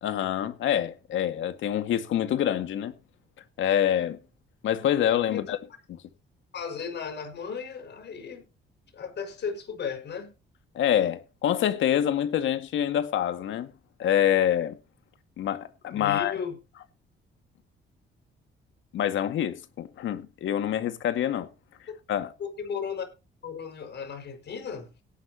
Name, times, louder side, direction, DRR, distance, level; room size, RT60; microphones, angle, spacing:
voice 1, 0.0-2.9 3.6-4.2 4.6-5.6 10.7-13.7 14.0-14.8 15.4-16.4 18.9-21.5 22.1-22.3, left 10 dB, 75° left, 2.1 m, -26 dB
voice 2, 5.1-5.5 6.5-8.5 8.9-10.3 15.9-16.6 22.4-23.1 23.4-24.9, left 6 dB, 60° left, 5.9 m, -35 dB
17.5 x 10.5 x 3.0 m
cardioid pair, 90°, 20 cm